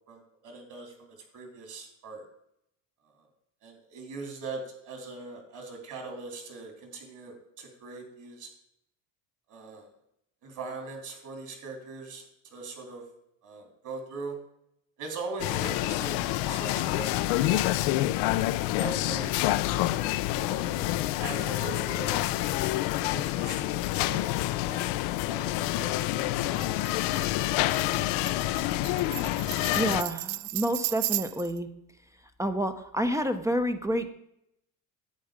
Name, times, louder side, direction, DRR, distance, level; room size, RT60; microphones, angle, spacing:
voice 1, 0.1-2.3 3.2-3.3 3.6-8.5 9.5-9.9 10.4-13.1 13.4-14.4 15.0-17.8 18.8-19.4 20.3-20.8 21.2-22.2 23.0-24.3 24.6-26.9, right 3 dB, 50° right, 4 dB, 3.4 m, -41 dB
sound 1, 15.4-30.0, left 16 dB, 85° left, 0.6 m, -27 dB
Tambourine, 26.6-31.6, right 18 dB, 75° right, 0.5 m, -35 dB
voice 2, 29.8-31.7 32.4-34.1, equal, 10° right, 8 dB, 0.7 m, -28 dB
10.5 x 8.4 x 5.1 m, 0.77 s
cardioid pair, 125°, 39 cm